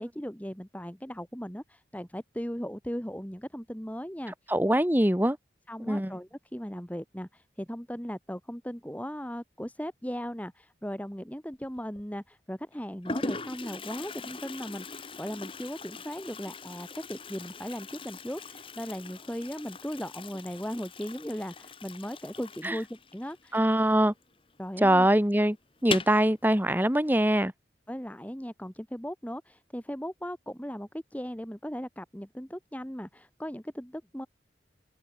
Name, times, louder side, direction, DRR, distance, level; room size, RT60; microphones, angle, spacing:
voice 1, 0.0-4.3 5.7-23.7 24.6-25.1 27.9-34.3, equal, 10° left, 2.4 m, -38 dB
voice 2, 4.5-5.4 5.9-6.1 22.6-22.8 23.5-24.1 24.8-25.6 25.8-27.5, right 1 dB, 10° right, 1.7 m, -23 dB
Toilet flush, 11.5-12.0 12.7-12.8 13.0-24.3 24.6-24.7 25.0-25.1 25.8-26.3, left 3 dB, 30° left, 1.8 m, -40 dB
open air
head